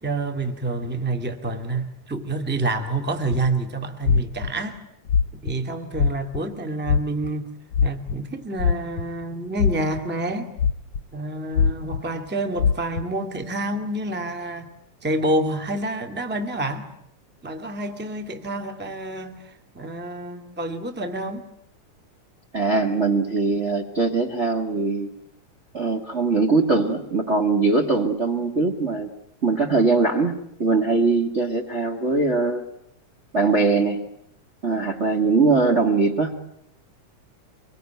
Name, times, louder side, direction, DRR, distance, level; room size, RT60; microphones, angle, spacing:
voice 1, 0.0-4.8 5.4-7.5 7.8-10.5 11.1-14.7 15.0-16.9 17.4-21.4, right 2 dB, 5° right, 6 dB, 1.6 m, -28 dB
sound 1, 3.3-3.5 4.0-4.5 5.1-5.5 5.9-6.4 6.8-7.3 7.7-8.2 8.6-9.2 9.6-10.0 10.6-11.0 11.5-12.0 12.6-13.0, left 6 dB, 55° left, 1.8 m, -21 dB
voice 2, 22.5-25.1 25.7-29.1 29.4-32.6 33.3-34.1 34.6-36.4, right 3 dB, 30° right, 1 dB, 1.5 m, -21 dB
25.0 x 23.5 x 9.3 m, 0.75 s
omnidirectional pair, 3.7 m